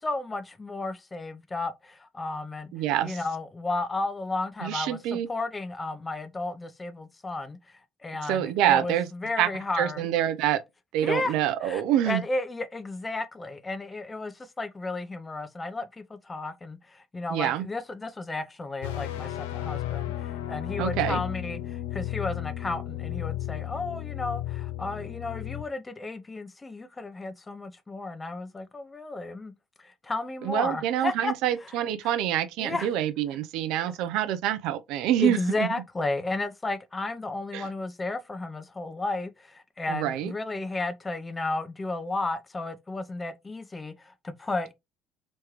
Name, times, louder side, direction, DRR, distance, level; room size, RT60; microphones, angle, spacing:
voice 1, 0.0-2.7 3.0-7.6 8.0-10.1 11.0-11.3 11.6-29.5 29.8-31.3 32.6-32.9 35.2-44.7, left 2 dB, 25° left, 0.7 m, -33 dB
voice 2, 2.7-3.2 4.6-5.3 8.2-9.1 9.4-9.5 9.7-10.6 10.9-12.2 17.3-17.6 20.8-21.2 30.4-35.7 37.5-37.7 39.9-40.3, right 11 dB, 70° right, 0.5 m, -26 dB
sound 1, 18.8-25.6, left 14 dB, 80° left, 0.5 m, -34 dB
3.4 x 3.1 x 3.0 m
hypercardioid pair, 55°, 0 cm